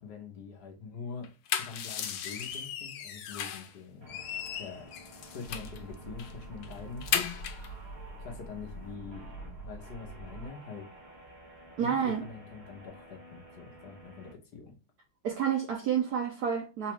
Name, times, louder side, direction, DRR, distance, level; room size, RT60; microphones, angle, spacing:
voice 1, 0.0-4.2 4.6-4.9 5.3-7.1 8.2-9.4 9.6-10.9 11.8-14.7, left 5 dB, 60° left, 1.2 m, -44 dB
sound 1, 1.2-3.7 4.1-5.8 6.2-6.3 6.6-7.7, left 9 dB, 85° left, 1.4 m, -35 dB
sound 2, 4.0-14.3, right 1 dB, 35° right, 1.5 m, -52 dB
sound 3, 5.4-10.5, right 2 dB, 30° left, 0.8 m, -46 dB
voice 2, 11.8-12.2 15.2-16.9, right 8 dB, 75° right, 0.9 m, -29 dB
4.1 x 2.3 x 2.9 m
omnidirectional pair, 2.2 m